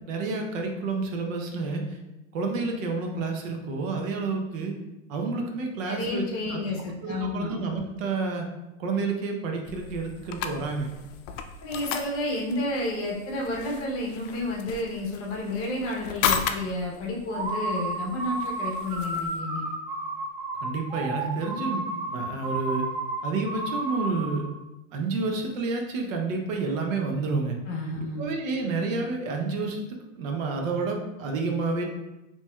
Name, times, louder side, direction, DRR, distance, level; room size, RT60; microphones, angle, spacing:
voice 1, 0.1-2.0 2.3-4.7 5.1-6.6 7.0-8.5 8.8-10.9 20.6-22.9 23.2-24.5 24.9-27.6 28.2-31.8, right 3 dB, 70° right, 2 dB, 0.9 m, -29 dB
voice 2, 5.8-7.5 11.6-19.6 27.7-28.2, left 2 dB, 35° left, -2 dB, 0.9 m, -31 dB
sound 1, 9.7-19.4, left 7 dB, 65° left, 0.5 m, -35 dB
sound 2, 17.3-24.5, right 2 dB, 35° right, 1.4 m, -32 dB
4.4 x 2.9 x 2.3 m, 0.99 s
supercardioid pair, 140°, 40 cm